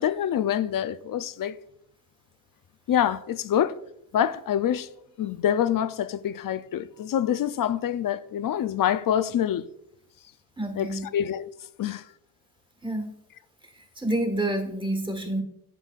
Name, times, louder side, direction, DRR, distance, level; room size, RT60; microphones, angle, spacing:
voice 1, 0.0-1.6 2.9-3.8 4.1-4.9 5.2-9.7 10.7-11.5 11.8-12.1, left 10 dB, 60° left, 0.5 m, -26 dB
voice 2, 10.6-11.1 12.8-13.1 13.7-15.4, right 1 dB, 15° right, 1.5 m, -28 dB
9.1 x 7.4 x 2.4 m
cardioid pair, 95°, 38 cm